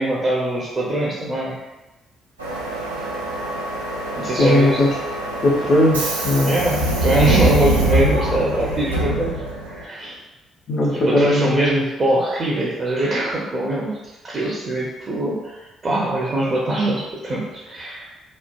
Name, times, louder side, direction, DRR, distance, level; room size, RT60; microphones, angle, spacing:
voice 1, 0.0-1.6 4.2-4.8 6.4-9.3 9.7-10.2 11.1-14.0 14.2-18.1, right 1 dB, 35° right, -6 dB, 0.6 m, -22 dB
Subway metro underground, 2.4-9.8, right 1 dB, 85° right, 0.3 m, -23 dB
voice 2, 4.4-4.9 5.4-6.6 10.7-11.7, left 1 dB, 50° left, -3 dB, 0.4 m, -18 dB
3.0 x 2.0 x 2.3 m, 1.1 s
figure-of-eight pair, 45°, 0 cm